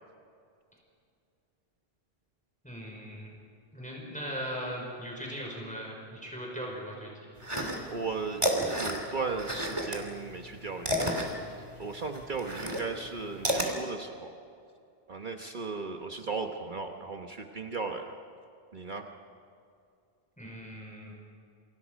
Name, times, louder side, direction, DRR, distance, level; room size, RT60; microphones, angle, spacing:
voice 1, 2.6-3.3 3.7-7.1 20.4-21.1, equal, 5° left, -2 dB, 5.1 m, -39 dB
sound 1, 7.4-8.1 8.3-10.0 10.3-13.7, equal, 30° right, 3.0 m, -30 dB
voice 2, 7.9-8.4 8.8-11.4 11.8-14.3 15.1-18.2 18.7-19.1, right 4 dB, 50° right, 4 dB, 1.2 m, -36 dB
28.5 x 25.0 x 5.2 m, 2.4 s
omnidirectional pair, 1.0 m